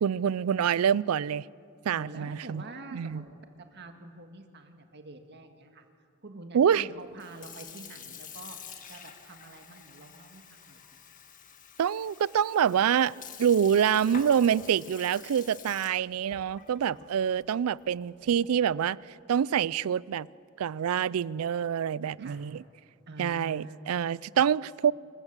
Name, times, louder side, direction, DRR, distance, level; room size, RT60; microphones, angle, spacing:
voice 1, 0.0-1.4 1.9-2.6 2.9-3.2 6.5-6.9 11.8-13.1 13.4-19.0 19.3-20.3 20.6-22.6 23.2-24.9, right 8 dB, 75° right, 0.4 m, -26 dB
voice 2, 1.9-3.3 3.7-5.9 6.2-8.6 8.9-10.8 22.2-22.4 23.1-23.9, right 2 dB, 55° right, 1.7 m, -46 dB
Sink (filling or washing) / Fill (with liquid), 7.1-18.6, left 7 dB, 40° left, 1.5 m, -48 dB
25.5 x 15.0 x 7.3 m
head